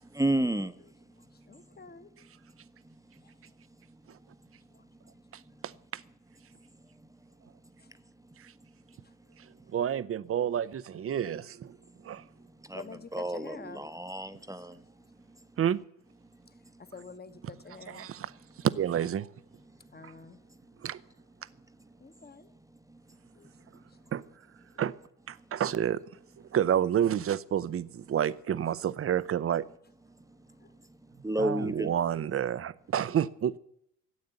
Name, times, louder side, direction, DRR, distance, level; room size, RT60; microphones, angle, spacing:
voice 1, 0.1-0.7 12.7-12.8 13.1-14.7 31.2-31.9, right 1 dB, 5° right, 1.0 m, -30 dB
voice 2, 1.5-2.3 3.2-3.3 4.7-5.2 7.8-7.9 11.1-11.4 12.7-13.9 16.8-18.1 19.9-20.4 22.0-22.5 23.3-23.8 30.6-30.7, left 4 dB, 20° left, 1.2 m, -48 dB
voice 3, 5.3-6.0 8.4-8.5 9.4-11.8 12.0-12.2 15.6-15.8 17.9-18.3 18.6-19.3 20.0-20.1 20.8-21.0 24.1-24.2 24.8-24.9 25.3-26.0 26.5-29.6 31.4-33.6, right 9 dB, 30° right, 0.7 m, -29 dB
14.0 x 8.6 x 8.1 m
hypercardioid pair, 55°, 48 cm